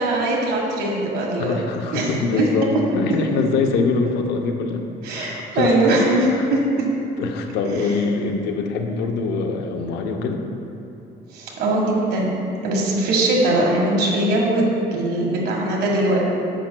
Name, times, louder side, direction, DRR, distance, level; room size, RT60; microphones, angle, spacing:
voice 1, 0.0-1.6 1.9-2.7 5.0-6.9 7.8-7.9 11.3-16.2, right 1 dB, 70° right, -2 dB, 1.5 m, -21 dB
voice 2, 1.4-4.8 5.1-5.7 7.2-10.4, left 4 dB, 85° left, 4 dB, 0.7 m, -23 dB
10.0 x 7.4 x 2.2 m, 2.8 s
cardioid pair, 110°, 17 cm